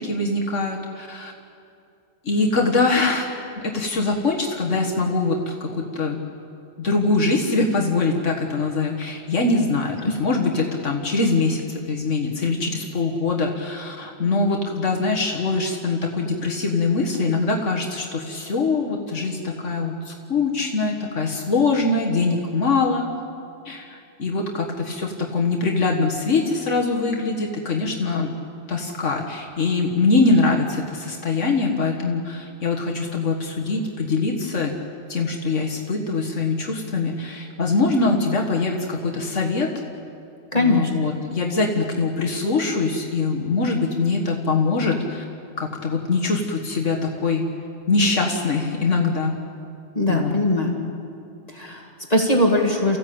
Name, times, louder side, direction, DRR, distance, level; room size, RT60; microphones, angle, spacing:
voice 1, 0.0-1.3 2.2-3.3 3.6-6.2 6.8-23.1 23.7-28.3 28.7-34.8 35.1-39.7 40.5-45.2 45.6-47.5 47.9-49.4 50.1-50.3, left 3 dB, 80° left, 1 dB, 2.0 m, -23 dB
voice 2, 40.5-40.9 50.0-50.8 51.5-53.0, left 1 dB, 30° left, 1 dB, 2.1 m, -20 dB
29.0 x 15.5 x 8.7 m, 2.6 s
omnidirectional pair, 1.2 m